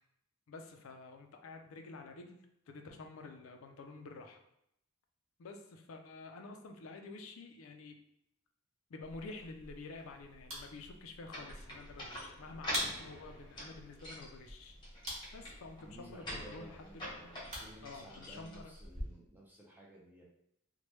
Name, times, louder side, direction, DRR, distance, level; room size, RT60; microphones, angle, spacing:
voice 1, 0.5-4.4 5.4-7.9 8.9-14.8 15.3-17.0 17.8-18.7, left 3 dB, 75° left, 4 dB, 0.4 m, -49 dB
sound 1, 9.0-19.0, equal, 35° right, 1.0 m, -47 dB
sound 2, 11.3-19.1, left 1 dB, 20° left, 0.8 m, -46 dB
voice 2, 15.8-20.2, right 1 dB, 10° right, -3 dB, 0.4 m, -55 dB
3.0 x 2.1 x 3.0 m, 0.78 s
head